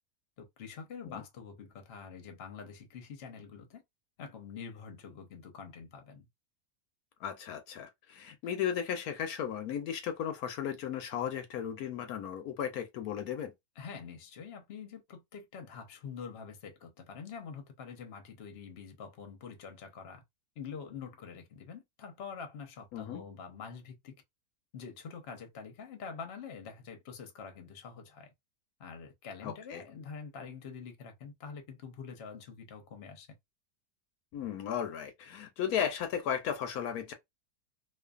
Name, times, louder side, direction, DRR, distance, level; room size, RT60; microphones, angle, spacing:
voice 1, 0.4-3.8 4.2-6.3 13.8-20.2 20.6-24.1 24.7-28.3 28.8-33.4, left 6 dB, 50° left, 0.9 m, -46 dB
voice 2, 7.2-13.5 22.9-23.2 29.4-29.8 34.3-37.1, left 8 dB, 80° left, 1.1 m, -35 dB
2.6 x 2.5 x 2.3 m
omnidirectional pair, 1.6 m